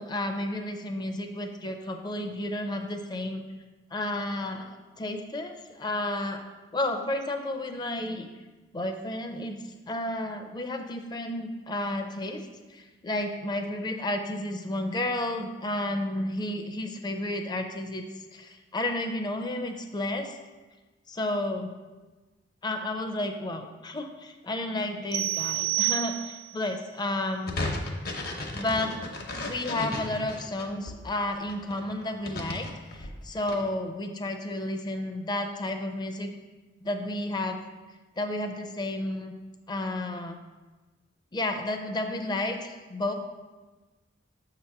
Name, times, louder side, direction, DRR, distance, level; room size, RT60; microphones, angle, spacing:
voice 1, 0.0-3.4 3.9-6.4 6.7-8.3 8.7-9.6 9.9-18.0 18.3-20.4 21.1-21.7 22.6-27.6 28.5-28.9 29.5-32.7 32.9-36.3 36.8-37.6 38.2-39.3 39.7-40.4 41.3-43.1, left 1 dB, 25° left, 5 dB, 0.5 m, -32 dB
sound 1, 25.1-26.7, right 17 dB, 65° right, 0.4 m, -29 dB
sound 2, 27.5-30.9 31.5-33.5, left 2 dB, 55° left, 0.8 m, -34 dB
6.9 x 2.9 x 5.7 m, 1.2 s
head